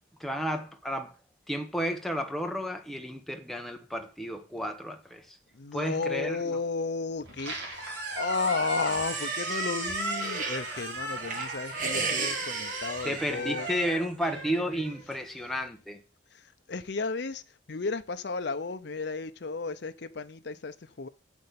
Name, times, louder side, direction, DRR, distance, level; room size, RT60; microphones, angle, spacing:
voice 1, 0.2-1.1 1.5-5.4 5.7-6.6 13.0-16.0, equal, ahead, 1.1 m, -32 dB
voice 2, 5.5-7.8 8.1-13.7 16.3-21.1, left 4 dB, 60° left, 0.6 m, -33 dB
Squeak, 7.2-15.5, right 2 dB, 65° right, 3.7 m, -36 dB
sound 1, 8.0-10.7 11.1-14.0, right 4 dB, 45° right, 1.6 m, -36 dB
7.6 x 6.2 x 6.9 m
head